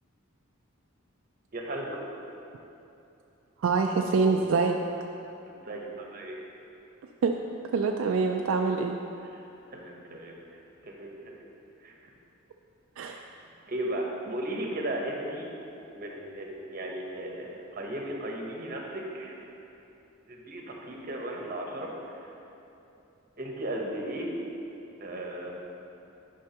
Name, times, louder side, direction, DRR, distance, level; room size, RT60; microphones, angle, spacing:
voice 1, 1.5-2.0 5.7-6.4 9.7-10.3 10.9-11.3 11.8-11.9 13.7-15.5 15.9-19.3 20.3-21.9 23.4-24.3 25.0-25.5, right 1 dB, 45° right, 0 dB, 0.9 m, -35 dB
voice 2, 3.6-4.8 7.2-7.3 7.7-9.0 13.0-13.2, right 4 dB, 75° right, 3 dB, 0.3 m, -25 dB
9.9 x 5.4 x 2.9 m, 2.9 s
head